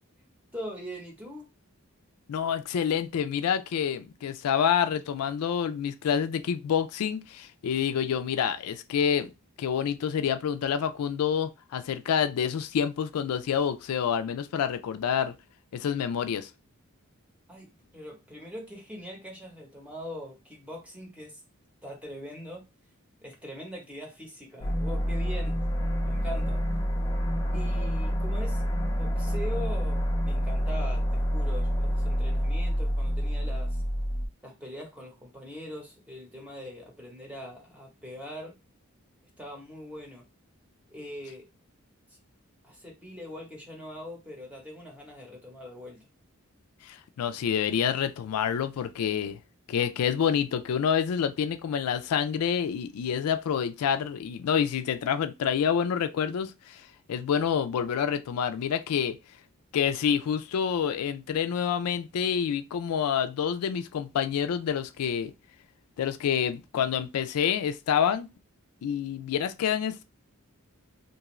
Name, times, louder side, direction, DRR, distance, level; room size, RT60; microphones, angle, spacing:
voice 1, 0.5-1.5 17.5-21.4 21.8-22.6 23.2-25.6 26.0-26.6 27.5-28.6 29.0-33.8 34.4-38.5 39.4-40.2 40.9-41.5 42.1-42.2 42.6-46.0, equal, 5° right, 0.8 m, -42 dB
voice 2, 2.3-9.3 9.6-15.3 15.7-16.5 46.8-49.4 49.7-56.8 57.1-59.2 59.7-65.3 66.0-68.3 68.8-70.0, left 8 dB, 85° left, 0.3 m, -27 dB
sound 1, 24.6-34.3, equal, 20° left, 0.4 m, -27 dB
2.5 x 2.4 x 3.0 m
head